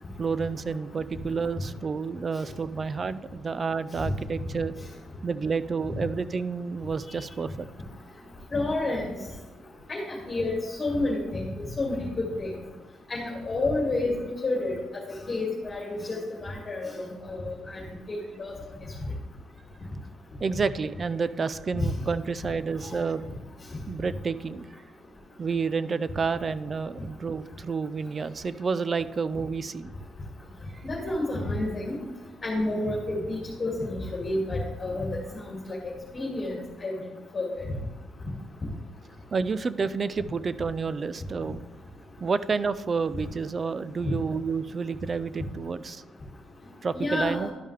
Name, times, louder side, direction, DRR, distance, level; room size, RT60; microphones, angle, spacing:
voice 1, 0.2-4.7 5.2-7.7 20.4-23.3 23.9-24.7 25.4-29.9 39.3-41.6 42.2-46.0 46.8-47.5, right 5 dB, 40° right, 15 dB, 0.4 m, -29 dB
voice 2, 8.5-9.0 9.9-11.4 11.8-11.9 12.4-12.5 13.1-14.2 14.4-14.8 15.3-17.8 18.1-18.5 22.8-23.0 30.8-32.0 32.4-35.1 35.5-35.6 36.1-36.9 37.3-37.6 44.0-44.1 46.9-47.5, left 2 dB, 30° left, -4 dB, 2.1 m, -29 dB
12.0 x 5.5 x 3.3 m, 1.2 s
cardioid pair, 90°, 0 cm